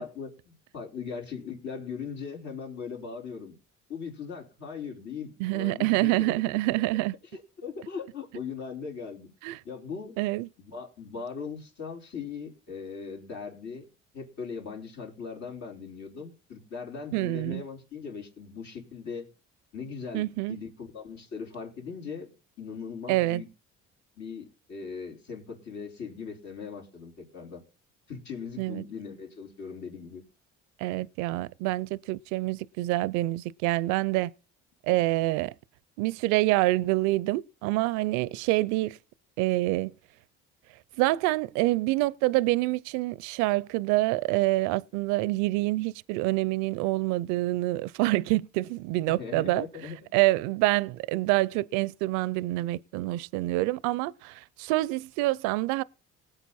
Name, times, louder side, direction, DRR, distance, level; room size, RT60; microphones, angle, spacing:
voice 1, 0.0-3.5 3.9-6.4 6.8-6.9 7.3-9.3 9.6-10.1 10.6-13.8 14.1-19.3 19.7-22.3 22.6-23.5 24.2-27.6 28.1-30.2 34.9-35.0 49.2-50.0, left 5 dB, 70° left, 4.7 m, -39 dB
voice 2, 5.4-7.2 9.4-9.6 10.2-10.5 17.1-17.6 20.1-20.6 23.1-23.4 28.6-28.8 30.8-34.3 34.8-35.5 36.0-39.0 39.4-39.9 41.0-49.7 50.1-55.8, right 19 dB, 85° right, 0.5 m, -26 dB
18.5 x 7.9 x 4.2 m
supercardioid pair, 80°, 29 cm